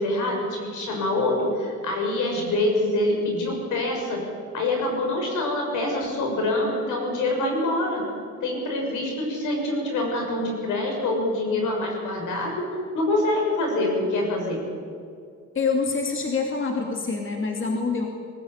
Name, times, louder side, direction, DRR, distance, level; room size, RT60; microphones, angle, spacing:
voice 1, 0.0-4.2 4.5-8.0 8.4-12.7 12.9-14.6, left 2 dB, 80° left, 1 dB, 6.6 m, -25 dB
voice 2, 15.5-18.1, left 4 dB, 40° left, 2 dB, 2.7 m, -26 dB
22.5 x 15.0 x 8.9 m, 2.3 s
cardioid pair, 90°, 30 cm